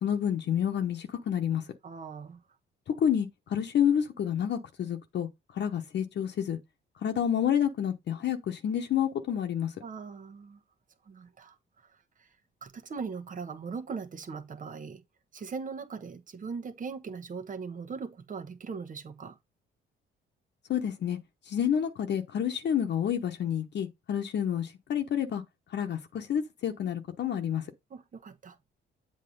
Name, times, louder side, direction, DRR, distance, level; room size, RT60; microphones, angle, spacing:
voice 1, 0.0-1.6 3.0-5.3 5.5-6.6 7.0-9.7 20.7-21.2 21.5-25.4 25.7-27.7, left 9 dB, 60° left, 1.0 m, -29 dB
voice 2, 1.8-2.4 9.8-10.6 11.0-11.5 12.2-12.3 12.6-15.0 15.3-19.4 27.9-28.6, right 5 dB, 40° right, 1.2 m, -40 dB
7.9 x 3.0 x 5.3 m
cardioid pair, 90°, 20 cm